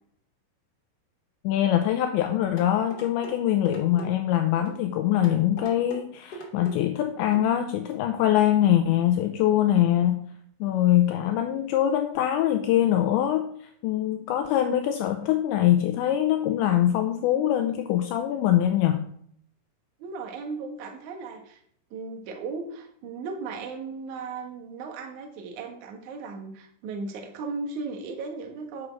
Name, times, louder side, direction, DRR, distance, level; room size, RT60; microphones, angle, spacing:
voice 1, 1.4-10.2 10.6-13.5 13.8-19.1, left 11 dB, 85° left, 6 dB, 2.6 m, -23 dB
sound 1, 2.6-3.3 3.6-4.1 4.6-4.8 5.2-6.0 6.3-6.8 7.3-7.5 7.9-8.0, equal, 35° left, 1.8 m, -40 dB
voice 2, 20.0-21.6 21.9-28.9, right 4 dB, 65° right, 3 dB, 2.0 m, -36 dB
9.7 x 6.3 x 6.0 m, 0.66 s
omnidirectional pair, 5.9 m